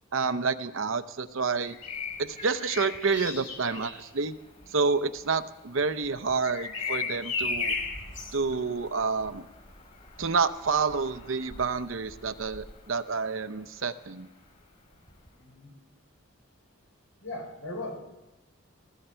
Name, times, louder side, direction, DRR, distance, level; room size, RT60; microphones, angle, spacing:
voice 1, 0.1-1.8 2.2-4.3 4.7-7.7 8.3-9.4 10.2-14.3, right 4 dB, 70° right, 12 dB, 0.7 m, -29 dB
Bird vocalization bird call bird song, 1.5-13.4 15.1-15.3, left 4 dB, 40° left, 4.2 m, -38 dB
voice 2, 15.4-15.7 17.2-18.0, left 2 dB, 80° left, 3 dB, 4.2 m, -38 dB
20.5 x 15.5 x 4.5 m, 1.0 s
head